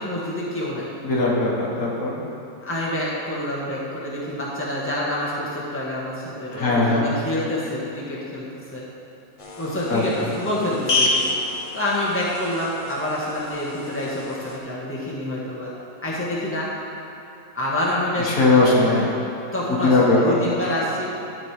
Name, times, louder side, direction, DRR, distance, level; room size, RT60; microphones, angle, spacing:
voice 1, 0.0-0.9 2.6-8.8 9.6-11.4 11.7-15.7 16.0-16.7 17.5-19.1 19.5-21.1, left 1 dB, 10° left, -6 dB, 1.5 m, -27 dB
voice 2, 1.0-2.2 6.5-7.1 9.9-10.3 18.2-19.1 19.7-20.4, left 2 dB, 85° left, -4 dB, 1.9 m, -19 dB
sound 1, 9.4-14.6, left 2 dB, 30° left, 0.7 m, -29 dB
12.5 x 4.4 x 4.9 m, 3.0 s
omnidirectional pair, 1.4 m